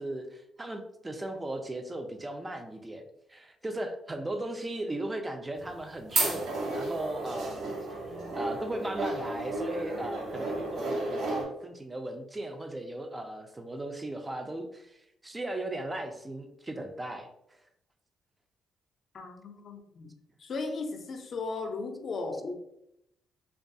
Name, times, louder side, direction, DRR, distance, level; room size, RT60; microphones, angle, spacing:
voice 1, 0.0-15.0 15.2-17.3, right 1 dB, 20° right, 6 dB, 0.4 m, -37 dB
sound 1, 5.6-11.4, right 2 dB, 70° right, 0.6 m, -33 dB
voice 2, 19.1-20.1 20.4-22.5, left 3 dB, 50° left, 5 dB, 0.4 m, -36 dB
2.6 x 2.3 x 2.6 m, 0.80 s
cardioid pair, 90°, 0 cm